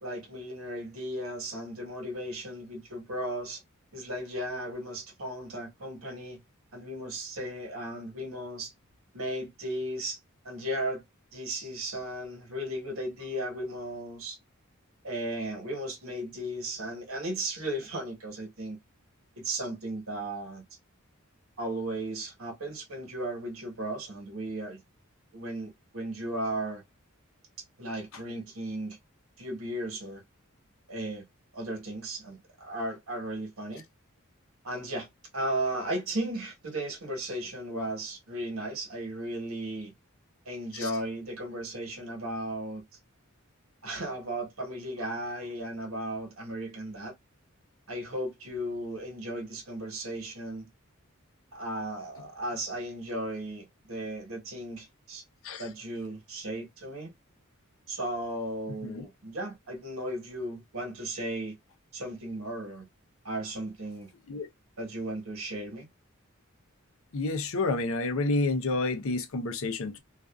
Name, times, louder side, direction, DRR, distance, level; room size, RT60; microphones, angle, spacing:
voice 1, 0.0-3.6 3.9-6.4 6.7-8.7 9.1-10.2 10.4-11.0 11.3-14.4 15.0-18.8 19.4-20.6 21.6-24.8 25.3-26.8 27.8-29.0 29.4-30.2 30.9-31.3 31.5-33.8 34.6-35.1 35.3-39.9 40.4-42.8 43.8-47.1 47.9-50.7 51.5-55.2 55.6-57.1 57.9-61.6 61.9-62.9 63.2-64.1 64.8-65.9, right 1 dB, 70° right, 1.2 m, -35 dB
voice 2, 67.1-70.0, left 2 dB, 70° left, 0.6 m, -29 dB
2.4 x 2.4 x 2.2 m
head